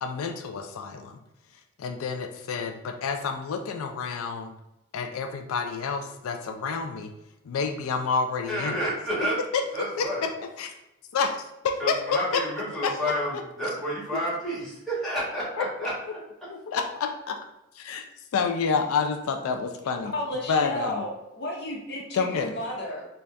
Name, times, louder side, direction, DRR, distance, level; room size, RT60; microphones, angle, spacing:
voice 1, 0.0-1.2 1.8-4.5 4.9-7.1 7.4-8.8 9.5-10.3 10.6-10.7 11.1-12.4 12.8-12.9 13.3-13.7 14.1-14.2 15.6-15.9 16.5-17.3 17.7-18.0 18.3-20.1 20.5-21.0 22.1-22.5, left 5 dB, 90° left, 5 dB, 0.4 m, -29 dB
voice 2, 8.5-9.4 9.7-10.2 11.8-15.9, equal, ahead, -7 dB, 1.4 m, -30 dB
voice 3, 20.1-23.1, left 1 dB, 50° left, -2 dB, 0.9 m, -33 dB
3.9 x 2.3 x 3.3 m, 0.91 s
head